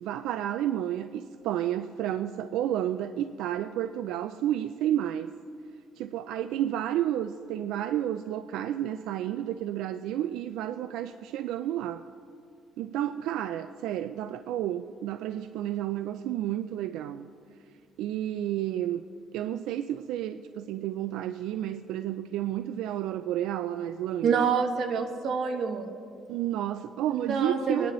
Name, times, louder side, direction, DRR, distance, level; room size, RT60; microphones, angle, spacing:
voice 1, 0.0-5.3 6.0-12.0 12.8-17.3 18.0-19.0 19.3-24.5 26.3-27.9, right 11 dB, 80° right, 9 dB, 0.3 m, -31 dB
voice 2, 24.2-25.9 27.1-27.9, right 5 dB, 50° right, 4 dB, 1.1 m, -27 dB
21.5 x 10.0 x 3.1 m, 2.3 s
cardioid pair, 170°, 0 cm